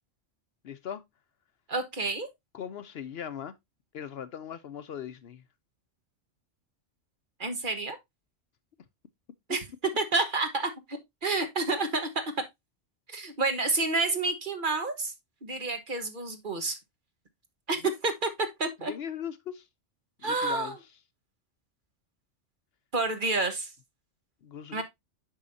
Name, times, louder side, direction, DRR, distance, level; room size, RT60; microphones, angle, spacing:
voice 1, 0.6-1.0 2.5-3.5 3.9-5.4 9.5-9.6 17.8-17.9 18.8-19.7 20.2-20.8 24.4-24.8, left 9 dB, 60° left, 0.8 m, -39 dB
voice 2, 1.7-2.3 7.4-8.0 9.5-9.6 10.0-12.4 13.1-15.1 15.4-16.8 17.7-18.9 20.2-20.7 22.9-23.7 24.7-24.8, right 3 dB, 45° right, 1.3 m, -29 dB
8.4 x 5.6 x 2.6 m
omnidirectional pair, 1.2 m